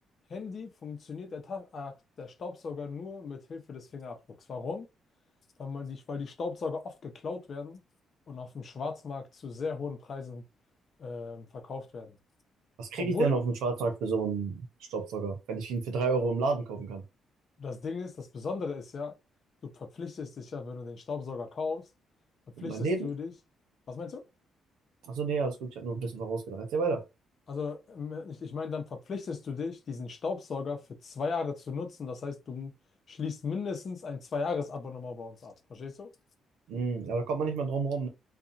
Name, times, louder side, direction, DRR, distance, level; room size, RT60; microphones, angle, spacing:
voice 1, 0.3-4.2 4.5-4.9 5.6-7.8 8.3-10.4 11.0-12.2 13.0-13.4 17.6-19.1 19.6-21.8 22.6-23.3 23.9-24.2 27.5-32.7 33.1-36.1, left 4 dB, 50° left, 0.8 m, -37 dB
voice 2, 12.8-17.0 22.6-23.1 25.0-27.0 36.7-38.1, right 4 dB, 85° right, 0.8 m, -30 dB
2.7 x 2.4 x 2.5 m
cardioid pair, 80°, 0 cm